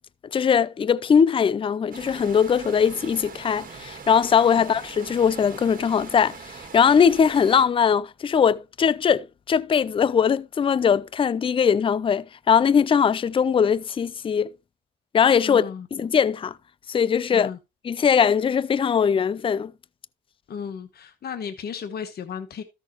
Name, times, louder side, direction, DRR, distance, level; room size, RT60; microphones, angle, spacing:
voice 1, 0.3-14.5 15.1-16.6 16.9-17.5 17.8-19.7, left 7 dB, 25° left, 0.4 m, -21 dB
sound 1, 1.9-7.6, right 5 dB, 45° right, 2.1 m, -42 dB
voice 2, 15.4-15.9 17.3-17.6 20.5-22.6, left 7 dB, 55° left, 1.1 m, -34 dB
13.0 x 6.4 x 2.9 m
cardioid pair, 90°, 20 cm